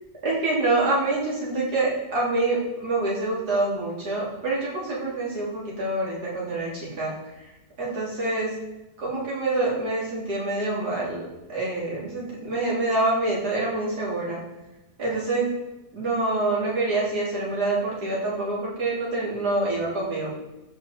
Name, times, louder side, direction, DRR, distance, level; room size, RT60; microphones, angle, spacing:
voice 1, 0.2-7.1 7.8-8.6 9.0-14.4 15.0-15.6 15.9-20.3, right 2 dB, 70° right, -5 dB, 3.8 m, -26 dB
13.0 x 5.8 x 4.3 m, 1.0 s
omnidirectional pair, 1.8 m